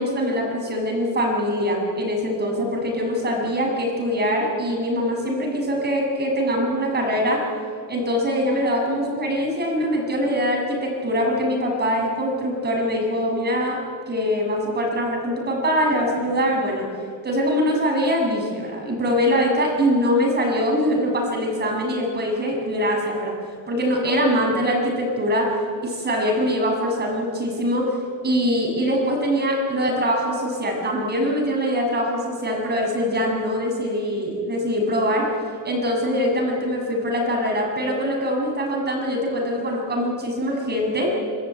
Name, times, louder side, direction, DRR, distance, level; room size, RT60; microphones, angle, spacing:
voice 1, 0.0-7.4 7.9-13.8 14.1-16.9 17.2-23.4 23.7-25.5 25.8-28.0 28.2-35.3 35.6-41.1, equal, 20° right, 0 dB, 7.4 m, -23 dB
27.0 x 19.0 x 9.2 m, 2.1 s
cardioid pair, 150°, 43 cm